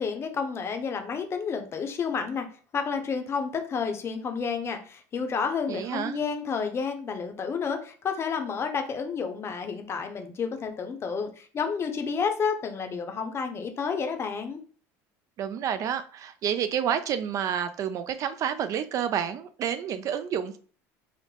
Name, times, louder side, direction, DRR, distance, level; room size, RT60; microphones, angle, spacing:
voice 1, 0.0-2.5 2.7-14.6, left 5 dB, 35° left, 6 dB, 0.6 m, -30 dB
voice 2, 5.7-6.2 15.4-20.6, right 9 dB, 45° right, 10 dB, 0.3 m, -29 dB
3.7 x 2.1 x 3.3 m, 0.43 s
supercardioid pair, 100°, 8 cm